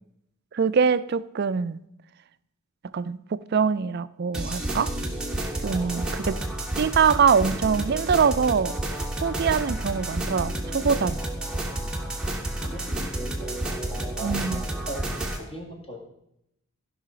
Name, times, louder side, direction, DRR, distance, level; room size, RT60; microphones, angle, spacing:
voice 1, 0.5-1.8 2.8-4.9 5.6-6.4 6.8-8.7 9.2-11.2 14.2-14.6, right 6 dB, 45° right, 0.3 m, -23 dB
sound 1, 4.3-15.4, right 1 dB, 5° right, 1.1 m, -30 dB
voice 2, 5.7-6.0 6.3-6.4 12.1-13.1 13.4-16.0, right 1 dB, 25° left, 1.9 m, -41 dB
15.0 x 5.6 x 5.0 m
head